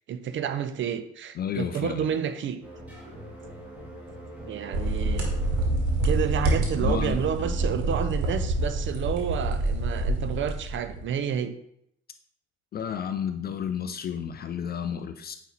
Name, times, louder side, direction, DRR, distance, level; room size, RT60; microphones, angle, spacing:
voice 1, 0.1-2.6 4.5-5.3 6.0-11.5, right 8 dB, 35° right, 10 dB, 0.5 m, -30 dB
voice 2, 1.4-2.1 6.8-7.2 12.7-15.4, left 8 dB, 25° left, 9 dB, 0.4 m, -31 dB
sound 1, 2.6-8.0, equal, 5° right, 1.8 m, -41 dB
sound 2, 4.7-11.0, right 2 dB, 50° right, 1.7 m, -27 dB
9.0 x 3.1 x 4.1 m, 0.75 s
figure-of-eight pair, 50°, 36 cm